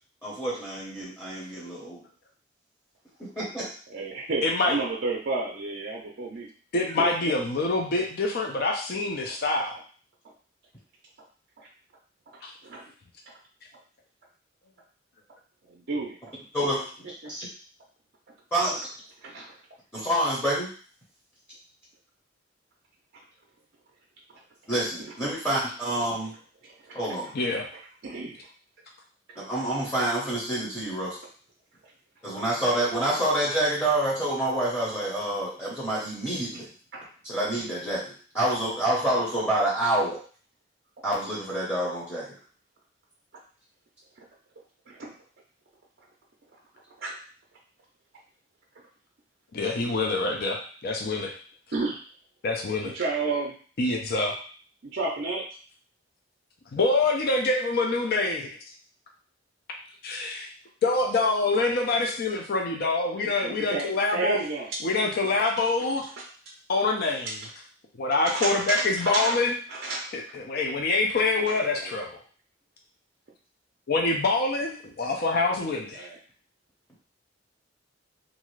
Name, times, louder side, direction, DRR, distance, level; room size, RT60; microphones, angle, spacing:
voice 1, 0.2-2.0 3.4-3.7 16.5-16.8 17.3-17.5 18.5-18.9 19.9-20.7 24.7-26.3 26.9-27.3 29.4-31.2 32.2-36.7 37.2-40.2 41.0-42.3, right 1 dB, 10° left, -7 dB, 0.8 m, -27 dB
voice 2, 3.9-6.5 7.0-7.4 11.6-11.7 12.6-12.8 13.3-13.4 15.7-16.2 17.2-17.3 19.2-19.5 25.2-25.4 26.6-27.0 28.0-28.4 36.9-37.0 44.9-45.1 47.0-47.1 51.7-52.0 52.8-53.5 54.8-55.4 63.1-64.8 68.2-69.4 69.7-70.1 71.5-71.9 75.9-76.2, right 3 dB, 55° right, -2 dB, 0.5 m, -31 dB
voice 3, 4.4-4.8 6.7-9.8 12.4-12.5 27.3-27.7 32.6-32.7 49.5-51.3 52.4-52.9 53.8-54.4 56.7-58.5 60.0-60.5 60.8-64.4 64.8-66.1 66.7-67.4 68.0-69.5 70.1-72.2 73.9-76.1, left 3 dB, 50° left, 1 dB, 0.5 m, -25 dB
2.6 x 2.4 x 3.1 m, 0.42 s
head